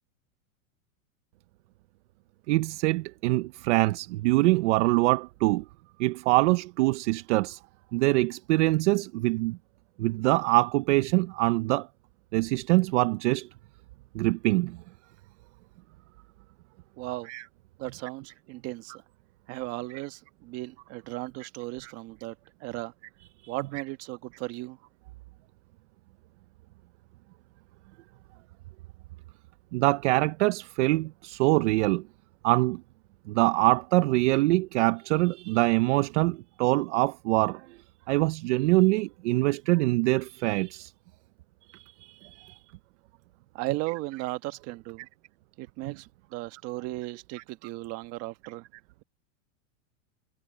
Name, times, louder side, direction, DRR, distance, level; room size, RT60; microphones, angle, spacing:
voice 1, 2.5-5.6 6.0-7.6 7.9-9.6 10.0-11.9 12.3-13.5 14.1-14.8 17.3-17.4 21.4-21.5 21.8-21.9 23.4-23.5 29.7-32.0 32.4-32.8 33.3-37.7 38.1-40.9 41.7-42.6 45.8-45.9 47.3-47.4, right 21 dB, 55° right, 0.7 m, -24 dB
voice 2, 17.0-17.3 17.8-18.9 19.5-22.3 22.6-22.9 23.5-24.8 43.5-45.1 45.6-48.6, right 20 dB, 40° right, 1.4 m, -36 dB
supercardioid pair, 155°, 41 cm